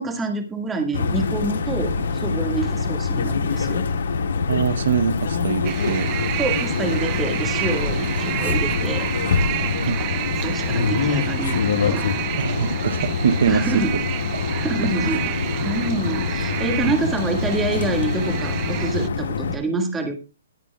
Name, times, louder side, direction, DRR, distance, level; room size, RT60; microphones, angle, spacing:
voice 1, 0.0-3.8 6.4-9.1 10.4-12.1 12.6-12.7 13.5-13.9 14.6-15.2 15.6-20.2, right 3 dB, 10° right, 1.8 m, -27 dB
sound 1, 0.9-19.6, left 5 dB, 75° left, 1.8 m, -25 dB
voice 2, 4.5-6.1 9.8-10.1 12.4-14.0 14.3-14.4 15.0-15.2, right 7 dB, 65° right, 0.7 m, -23 dB
sound 2, 5.6-19.1, right 16 dB, 25° right, 0.5 m, -30 dB
20.5 x 7.0 x 2.3 m
hypercardioid pair, 160°, 0 cm